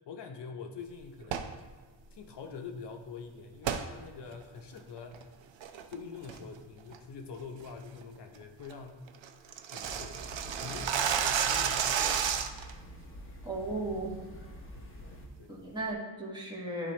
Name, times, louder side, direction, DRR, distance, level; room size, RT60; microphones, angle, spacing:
voice 1, 0.0-1.6 2.1-5.3 5.9-9.1 9.7-10.2 10.6-12.3 14.7-15.5, left 5 dB, 65° left, 4 dB, 0.7 m, -45 dB
sound 1, 1.2-1.6 3.6-3.9 4.3-4.4 5.0-5.2 5.6-5.9 6.3-6.6 6.9-7.0 7.4-7.7 8.0-8.1 8.4-8.5 8.7-8.8 9.1-12.7, right 8 dB, 75° right, 0.6 m, -31 dB
sound 2, 9.8-15.3, equal, 25° left, 0.8 m, -46 dB
voice 2, 13.4-14.2 15.5-16.9, right 2 dB, 10° right, -4 dB, 1.4 m, -36 dB
11.0 x 3.8 x 3.2 m, 1.4 s
wide cardioid pair, 160°, 46 cm